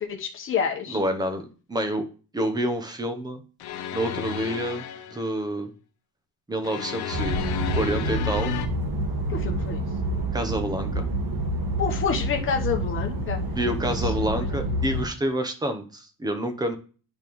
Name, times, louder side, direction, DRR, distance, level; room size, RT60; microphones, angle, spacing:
voice 1, 0.1-1.0 9.3-9.8 11.8-13.4 13.9-14.6, left 6 dB, 35° left, 1 dB, 1.0 m, -29 dB
voice 2, 0.9-1.4 1.7-2.0 2.3-3.4 3.9-5.7 6.5-7.4 7.7-8.5 10.3-11.1 13.6-16.8, right 1 dB, 10° right, 6 dB, 0.8 m, -28 dB
sound 1, 3.6-5.3 6.6-8.7, left 9 dB, 80° left, 0.9 m, -33 dB
sound 2, 7.1-15.1, right 1 dB, 70° right, 1.9 m, -28 dB
8.9 x 5.2 x 3.1 m, 0.38 s
cardioid pair, 165°, 38 cm